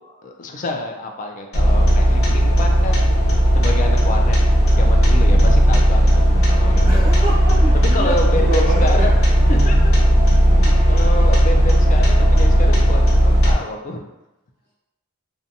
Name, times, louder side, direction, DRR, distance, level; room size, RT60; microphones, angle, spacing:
voice 1, 0.2-3.1 3.5-4.4 4.7-6.1 6.5-7.0 7.9-9.1 9.5-9.9 10.9-14.0, left 2 dB, 40° left, 3 dB, 0.3 m, -28 dB
sound 1, 1.5-13.5, equal, 80° left, 0.7 m, -14 dB
sound 2, 4.7-12.7, left 1 dB, 35° right, 0.7 m, -37 dB
voice 2, 6.8-9.3 10.9-11.0, right 2 dB, 20° left, -15 dB, 0.9 m, -27 dB
2.6 x 2.1 x 2.6 m, 0.97 s
head